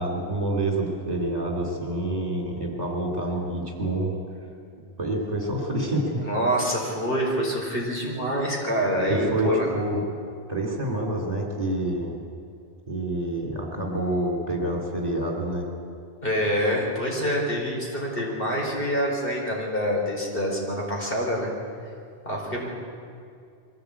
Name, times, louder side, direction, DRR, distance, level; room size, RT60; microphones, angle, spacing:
voice 1, 0.0-4.1 5.0-6.2 9.1-10.0 10.5-12.1 12.9-15.7, right 1 dB, 35° right, 0 dB, 3.4 m, -27 dB
voice 2, 6.2-9.7 16.2-21.5 22.2-22.7, equal, 55° left, -2 dB, 4.6 m, -26 dB
22.5 x 16.0 x 8.5 m, 2.4 s
omnidirectional pair, 1.2 m